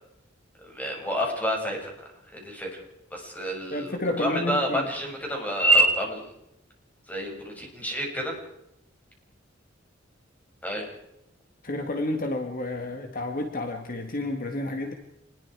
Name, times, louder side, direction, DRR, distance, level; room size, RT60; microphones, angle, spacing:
voice 1, 0.6-1.9 2.3-2.7 3.1-6.2 7.1-8.3 10.6-10.9, right 1 dB, 10° left, 0 dB, 6.8 m, -27 dB
voice 2, 3.7-4.9 11.6-14.9, left 2 dB, 45° left, 5 dB, 1.9 m, -30 dB
27.0 x 21.0 x 4.9 m, 0.82 s
head